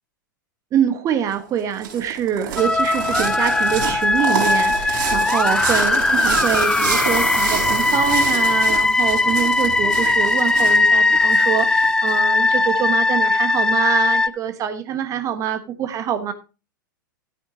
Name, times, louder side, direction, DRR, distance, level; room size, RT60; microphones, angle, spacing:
voice 1, 0.7-16.3, right 9 dB, 30° right, 9 dB, 1.3 m, -24 dB
sound 1, 1.3-12.1, right 6 dB, 55° right, 5.2 m, -28 dB
sound 2, 2.6-14.3, left 3 dB, 5° left, 0.4 m, -19 dB
sound 3, 5.9-8.9, left 6 dB, 45° left, 5.4 m, -35 dB
13.0 x 8.7 x 2.7 m, 0.30 s
figure-of-eight pair, 95°, 11 cm